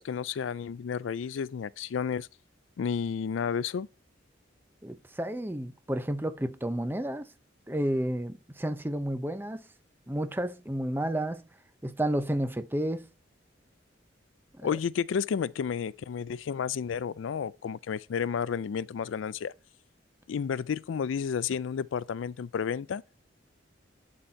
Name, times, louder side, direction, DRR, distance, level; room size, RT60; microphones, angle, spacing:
voice 1, 0.0-2.3 2.8-3.9 14.6-19.5 20.3-23.0, left 7 dB, 90° left, 0.4 m, -31 dB
voice 2, 4.8-7.3 7.7-9.6 10.1-11.4 11.8-13.1 14.5-14.7, right 1 dB, 10° right, 0.7 m, -31 dB
11.5 x 4.2 x 4.4 m
head